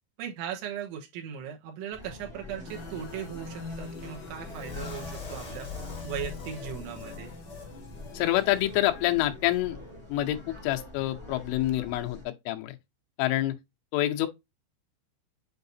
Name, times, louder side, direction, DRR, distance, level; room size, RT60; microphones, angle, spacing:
voice 1, 0.2-5.7 6.0-7.3, right 8 dB, 80° right, 3.6 m, -38 dB
sound 1, 1.9-12.2, left 1 dB, 10° right, 1.8 m, -45 dB
sound 2, 2.6-8.8, left 4 dB, 60° left, 2.0 m, -45 dB
sound 3, 4.5-7.7 8.0-8.1 8.5-8.6, left 5 dB, 20° left, 3.7 m, -41 dB
voice 2, 8.1-9.8 10.1-12.8 13.2-13.6 13.9-14.3, left 15 dB, 90° left, 3.4 m, -27 dB
8.7 x 4.8 x 2.7 m
omnidirectional pair, 5.5 m